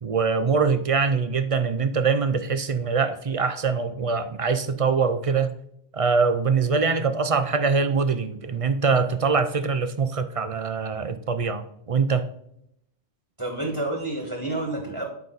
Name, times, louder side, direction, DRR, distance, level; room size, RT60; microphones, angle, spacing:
voice 1, 0.0-5.5 5.9-12.3, right 5 dB, 45° right, 10 dB, 0.5 m, -23 dB
voice 2, 13.4-15.0, right 2 dB, 20° right, 0 dB, 1.5 m, -29 dB
7.9 x 5.3 x 3.9 m, 0.74 s
omnidirectional pair, 1.1 m